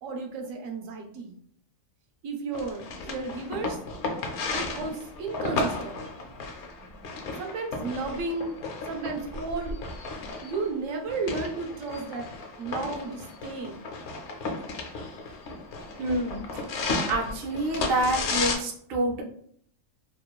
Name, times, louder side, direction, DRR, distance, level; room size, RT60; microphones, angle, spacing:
voice 1, 0.0-1.4 2.2-3.8 4.5-6.0 7.4-8.5 8.8-9.8 10.4-12.3 12.6-13.8, right 3 dB, 85° right, 2 dB, 0.9 m, -33 dB
sound 1, 2.5-18.5, left 3 dB, 70° left, 0.8 m, -34 dB
voice 2, 16.0-16.6 17.0-19.2, right 1 dB, 60° right, 0 dB, 0.7 m, -27 dB
2.9 x 2.2 x 2.2 m, 0.62 s
omnidirectional pair, 1.3 m